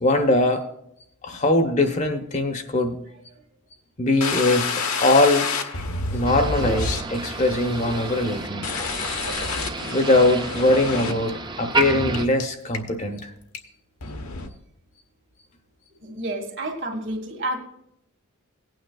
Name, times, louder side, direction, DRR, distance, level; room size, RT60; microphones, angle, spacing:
voice 1, 0.0-0.6 1.2-3.0 4.0-5.5 6.1-8.7 9.9-13.3, left 2 dB, 35° left, 6 dB, 0.9 m, -21 dB
sound 1, 4.2-11.3 11.8-11.9 12.1-12.4 12.7-13.2 13.5-13.6 14.0-14.5, left 4 dB, 75° left, 1.1 m, -29 dB
Motor vehicle (road), 6.2-12.3, right 3 dB, 20° right, 0.4 m, -30 dB
voice 2, 16.0-17.6, right 1 dB, 55° right, 3 dB, 2.0 m, -30 dB
17.5 x 9.2 x 2.3 m, 0.76 s
head